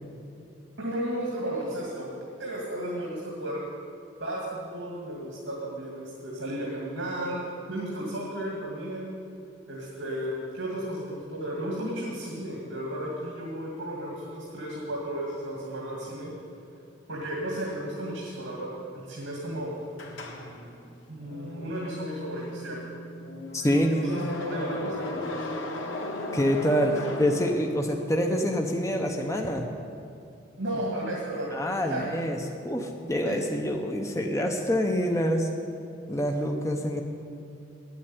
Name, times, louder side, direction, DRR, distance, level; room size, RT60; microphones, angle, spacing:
voice 1, 0.8-3.6 4.2-7.4 7.7-9.1 9.7-16.3 17.1-19.8 21.1-22.8 23.9-25.4 30.6-32.0 33.2-33.4, right 1 dB, 75° right, -4 dB, 2.3 m, -34 dB
sound 1, 20.0-28.0, left 1 dB, 80° left, 1.5 m, -36 dB
voice 2, 23.5-23.9 26.3-29.6 31.5-32.4 32.6-35.5 36.1-37.0, equal, 15° left, 2 dB, 0.7 m, -26 dB
10.0 x 8.6 x 9.8 m, 2.6 s
head